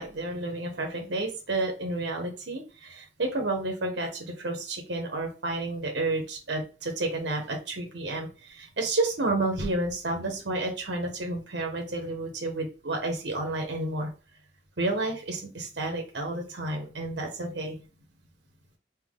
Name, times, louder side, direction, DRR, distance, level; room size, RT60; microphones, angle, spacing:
voice 1, 0.0-14.1 14.8-17.8, right 2 dB, 70° right, 2 dB, 0.9 m, -31 dB
3.6 x 2.9 x 3.6 m, 0.35 s
head